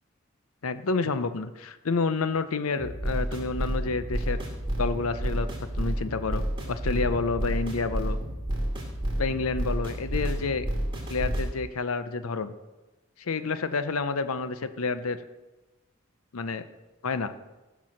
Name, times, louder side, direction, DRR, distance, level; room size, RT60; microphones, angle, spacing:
voice 1, 0.6-4.4 4.8-5.5 5.8-8.2 9.2-10.7 11.1-12.5 13.2-15.2 16.3-16.6 17.0-17.3, left 4 dB, 85° left, 12 dB, 0.7 m, -29 dB
sound 1, 2.8-11.5, right 1 dB, 25° right, 2.8 m, -30 dB
15.0 x 6.2 x 6.3 m, 1.1 s
head